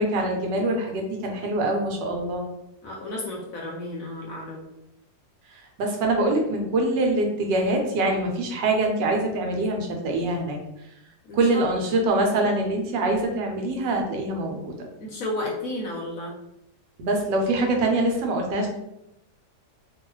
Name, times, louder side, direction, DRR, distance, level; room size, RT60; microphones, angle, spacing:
voice 1, 0.0-2.4 5.8-10.6 11.3-14.7 17.0-18.7, right 2 dB, 85° right, 2 dB, 1.3 m, -24 dB
voice 2, 2.8-4.6 11.3-11.6 15.0-16.3, left 1 dB, 65° left, -2 dB, 0.9 m, -32 dB
3.0 x 2.3 x 3.0 m, 0.84 s
omnidirectional pair, 1.9 m